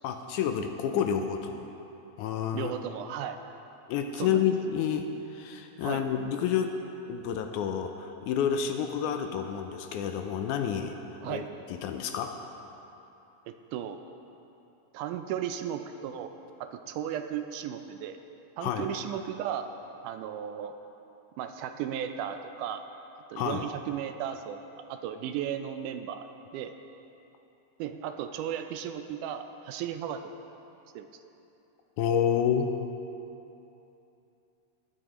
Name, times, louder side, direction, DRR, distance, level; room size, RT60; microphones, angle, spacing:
voice 1, 0.0-1.7 2.2-2.7 3.9-6.8 7.1-11.0 11.2-11.4 11.7-12.3 18.6-18.9 23.3-23.6 32.0-32.7, left 8 dB, 80° left, 6 dB, 1.9 m, -29 dB
voice 2, 2.5-3.4 4.2-4.4 5.8-6.1 11.2-11.5 13.5-14.0 14.9-16.3 16.6-18.2 18.6-19.7 20.0-20.7 21.4-22.8 23.3-24.6 24.9-26.3 26.5-26.7 27.8-30.2 31.0-31.1, right 9 dB, 80° right, 8 dB, 2.0 m, -35 dB
19.5 x 8.6 x 3.0 m, 2.9 s
omnidirectional pair, 3.7 m